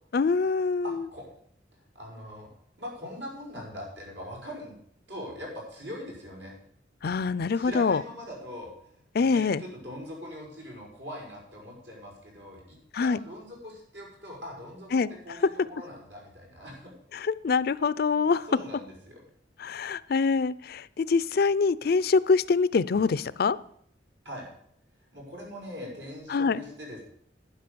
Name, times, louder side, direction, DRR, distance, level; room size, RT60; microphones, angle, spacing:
voice 1, 0.1-1.1 7.0-8.0 9.1-9.6 12.9-13.2 14.9-15.1 15.4-15.5 17.1-18.5 19.6-23.6 26.3-26.6, left 4 dB, 55° left, 18 dB, 0.4 m, -25 dB
voice 2, 0.8-1.3 1.9-2.5 2.8-4.8 5.1-6.5 7.5-8.7 9.2-16.9 18.5-19.2 24.2-24.5 25.1-27.0, equal, 85° right, -2 dB, 5.8 m, -41 dB
11.5 x 9.4 x 6.8 m, 0.68 s
head